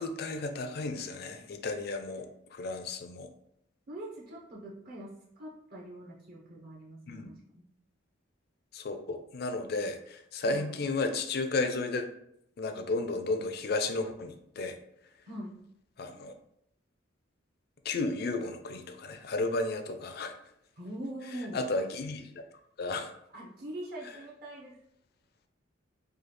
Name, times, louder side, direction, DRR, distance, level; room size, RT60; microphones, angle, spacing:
voice 1, 0.0-3.3 7.1-7.3 8.7-12.1 12.6-14.8 16.0-16.3 17.8-20.4 21.5-22.3 22.8-23.1, left 3 dB, 50° left, 7 dB, 0.4 m, -33 dB
voice 2, 3.9-7.6 10.4-10.8 15.2-15.6 20.8-21.6 23.3-24.8, right 1 dB, 50° right, -5 dB, 0.8 m, -43 dB
4.9 x 2.3 x 3.0 m, 0.76 s
head